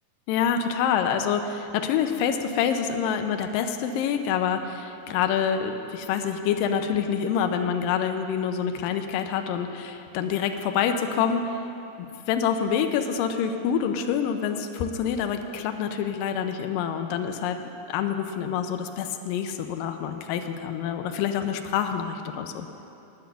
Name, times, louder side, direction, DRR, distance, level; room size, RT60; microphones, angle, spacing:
voice 1, 0.3-11.6 12.3-17.6 17.9-22.7, left 7 dB, 80° left, 6 dB, 2.3 m, -26 dB
10.5 x 9.2 x 6.9 m, 2.8 s
omnidirectional pair, 4.0 m